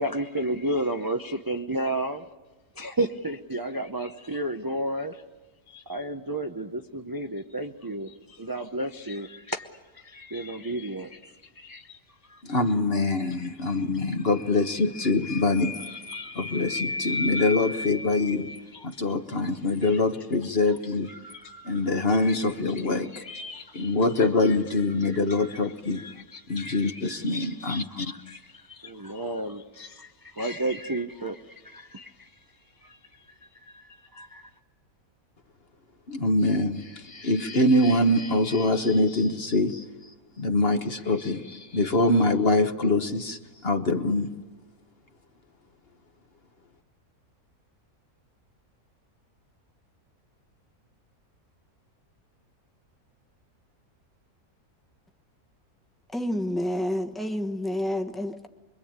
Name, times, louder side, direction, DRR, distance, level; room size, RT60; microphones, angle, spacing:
voice 1, 0.0-2.3 2.7-5.2 5.7-9.7 9.9-12.4 15.3-15.4 15.8-16.8 17.3-17.7 18.7-19.0 19.8-20.0 20.7-20.8 21.1-22.4 22.8-24.5 25.0-32.4 32.8-34.5, right 1 dB, 20° right, 0.7 m, -34 dB
voice 2, 12.4-21.1 21.6-23.2 23.7-26.0 26.5-28.1 36.1-39.9 40.4-44.3, left 2 dB, 45° left, 1.3 m, -24 dB
voice 3, 56.1-58.5, left 1 dB, ahead, 1.1 m, -29 dB
25.5 x 23.0 x 8.8 m
omnidirectional pair, 1.6 m